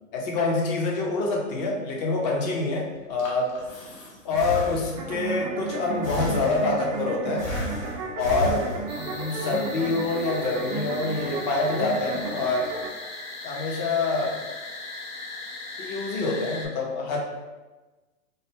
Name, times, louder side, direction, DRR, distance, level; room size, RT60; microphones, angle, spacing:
voice 1, 0.1-3.6 4.2-7.5 8.2-12.7 13.4-14.5 15.8-17.2, left 3 dB, 30° left, 0 dB, 0.7 m, -26 dB
Breathing, 3.0-5.3 6.0-7.0 7.4-9.2, left 1 dB, 70° left, 1.2 m, -34 dB
sound 1, 5.0-12.9, right 4 dB, 30° right, 0.4 m, -33 dB
sound 2, 8.9-16.7, left 2 dB, 55° left, 1.5 m, -38 dB
3.9 x 2.1 x 3.5 m, 1.2 s
hypercardioid pair, 145°, 41 cm